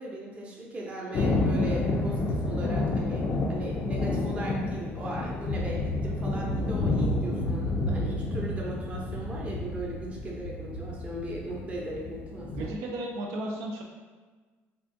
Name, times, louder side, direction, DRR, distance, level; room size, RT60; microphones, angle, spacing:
voice 1, 0.0-12.7, right 1 dB, 25° right, -3 dB, 0.7 m, -38 dB
Thunder, 1.1-12.7, left 2 dB, 40° left, 0.4 m, -29 dB
voice 2, 12.5-13.8, right 1 dB, 80° right, -1 dB, 0.5 m, -34 dB
3.5 x 3.4 x 2.6 m, 1.4 s
cardioid pair, 150°, 5 cm